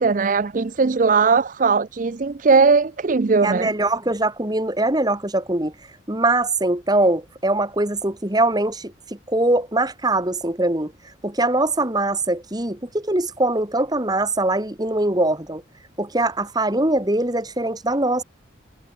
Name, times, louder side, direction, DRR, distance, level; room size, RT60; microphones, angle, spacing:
voice 1, 0.0-3.7, right 4 dB, 40° right, 0.5 m, -19 dB
voice 2, 3.4-5.7 6.1-8.9 9.3-10.9 11.2-15.6 16.0-18.2, right 2 dB, 20° right, 2.1 m, -22 dB
head